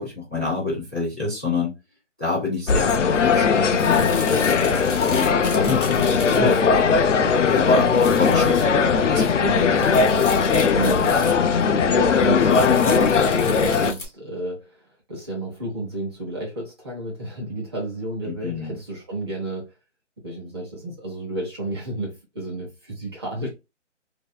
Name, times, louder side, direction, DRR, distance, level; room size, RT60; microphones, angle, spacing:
voice 1, 0.0-1.7 2.2-4.3 5.0-7.1 7.5-9.9 18.3-18.7, left 4 dB, 10° left, 0.6 m, -28 dB
sound 1, 2.7-13.9, left 5 dB, 75° left, 0.5 m, -19 dB
sound 2, 2.7-2.8 3.1-6.9 7.3-8.7 9.0-9.1 9.4-11.7 12.1-14.1, left 2 dB, 45° left, 1.0 m, -35 dB
voice 2, 10.7-11.2 11.8-19.7 20.2-23.5, right 2 dB, 20° right, 0.9 m, -32 dB
3.1 x 2.7 x 2.2 m
hypercardioid pair, 170°, 37 cm